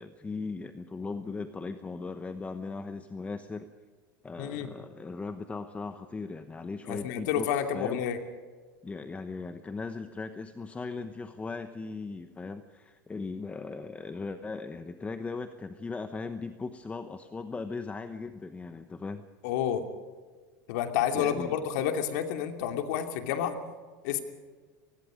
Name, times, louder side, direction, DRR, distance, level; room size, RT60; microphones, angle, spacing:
voice 1, 0.0-3.7 4.2-8.0 8.8-19.2 21.1-21.6, left 4 dB, 15° left, 9 dB, 1.0 m, -38 dB
voice 2, 4.4-4.7 6.8-8.2 19.4-19.9 20.7-23.6 24.0-24.2, left 9 dB, 70° left, 6 dB, 2.7 m, -29 dB
25.5 x 20.0 x 5.1 m, 1.5 s
supercardioid pair, 130°, 10 cm